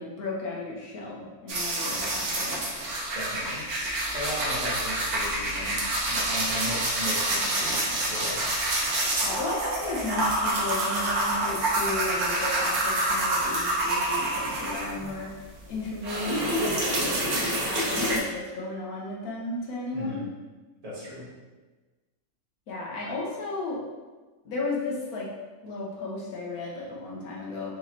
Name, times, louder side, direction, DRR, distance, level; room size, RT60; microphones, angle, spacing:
voice 1, 0.0-2.6 9.2-15.3 15.7-20.2 22.7-23.8 24.4-25.3 25.6-27.8, left 2 dB, 75° left, -3 dB, 1.3 m, -34 dB
sound 1, 1.5-15.3 15.6-18.2, right 1 dB, 75° right, 1.4 m, -27 dB
voice 2, 3.1-3.6 4.1-8.5 19.9-20.3 20.8-21.3, left 1 dB, 25° right, -7 dB, 1.3 m, -36 dB
4.7 x 3.8 x 2.8 m, 1.3 s
omnidirectional pair, 1.5 m